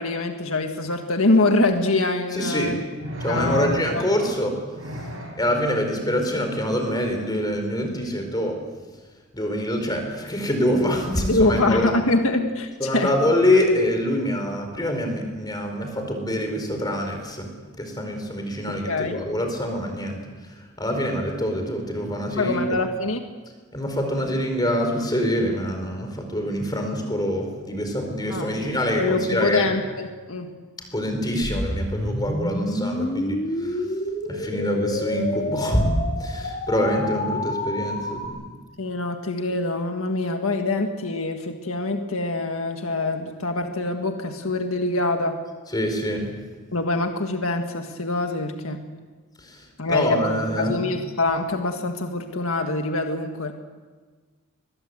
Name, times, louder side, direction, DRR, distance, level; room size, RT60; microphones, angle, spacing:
voice 1, 0.0-2.8 3.3-4.0 11.3-13.1 18.7-19.2 22.4-23.2 28.3-28.6 29.0-30.5 38.8-45.4 46.7-48.8 49.8-53.5, left 2 dB, 70° left, 5 dB, 1.7 m, -24 dB
voice 2, 2.3-2.8 3.2-4.6 5.4-8.6 9.3-11.9 12.8-17.5 17.8-20.2 20.4-22.7 23.7-29.7 30.9-33.9 34.2-35.9 36.2-38.4 45.7-46.3 49.4-50.8, equal, 20° left, 4 dB, 4.5 m, -25 dB
sound 1, 3.0-4.2 4.7-5.4 7.3-7.5, equal, 65° right, 6.4 m, -31 dB
sound 2, 31.4-38.3, left 1 dB, 35° left, 2.9 m, -28 dB
23.5 x 21.0 x 8.0 m, 1.4 s
head